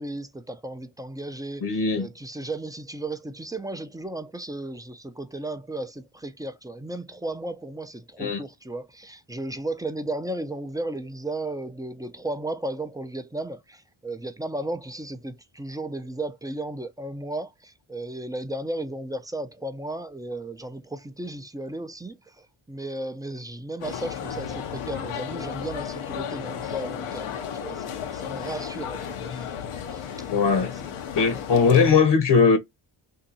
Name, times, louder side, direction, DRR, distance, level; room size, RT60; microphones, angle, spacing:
voice 1, 0.0-29.5 29.9-31.0 31.2-31.4, right 2 dB, 10° right, 0.4 m, -35 dB
voice 2, 1.6-2.1 8.2-8.4 30.3-30.7 31.1-32.6, left 5 dB, 55° left, 0.9 m, -19 dB
sound 1, 23.8-31.9, left 8 dB, 85° left, 0.7 m, -34 dB
2.8 x 2.6 x 3.9 m
cardioid pair, 70°, 49 cm